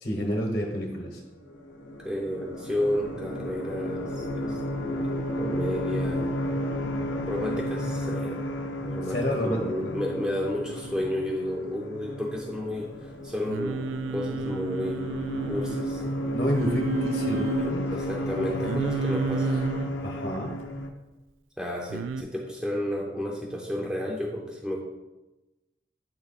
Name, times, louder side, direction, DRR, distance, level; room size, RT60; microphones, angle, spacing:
voice 1, 0.0-1.2 9.1-9.9 16.3-17.9 20.0-20.6, equal, 50° left, 0 dB, 1.0 m, -29 dB
sound 1, 1.4-20.9, equal, 80° left, 0.7 m, -32 dB
voice 2, 2.0-4.6 4.9-6.3 7.3-8.5 8.8-16.0 17.9-19.7 21.6-24.8, left 1 dB, 5° right, -2 dB, 0.6 m, -32 dB
Singing, 13.5-15.9 16.5-17.7 18.6-19.9 21.9-22.2, right 4 dB, 85° right, 0.3 m, -31 dB
8.7 x 3.2 x 4.1 m, 1.1 s
head